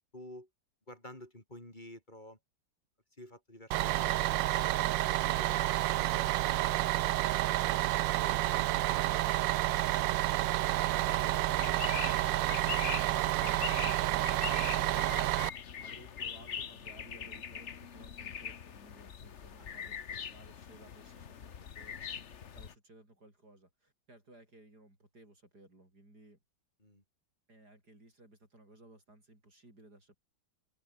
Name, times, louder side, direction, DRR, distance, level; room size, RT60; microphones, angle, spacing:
voice 1, 0.1-0.5 0.9-2.4 3.2-6.3 6.9-7.4 7.9-10.1 19.6-19.7 26.8-27.0, left 1 dB, 25° left, 5.3 m, -52 dB
Bus, 3.7-15.5, right 15 dB, 85° right, 1.4 m, -30 dB
sound 1, 11.1-22.7, left 7 dB, 45° left, 1.2 m, -42 dB
voice 2, 11.1-22.1 22.5-26.4 27.5-30.2, right 1 dB, 55° right, 8.7 m, -58 dB
open air
omnidirectional pair, 2.0 m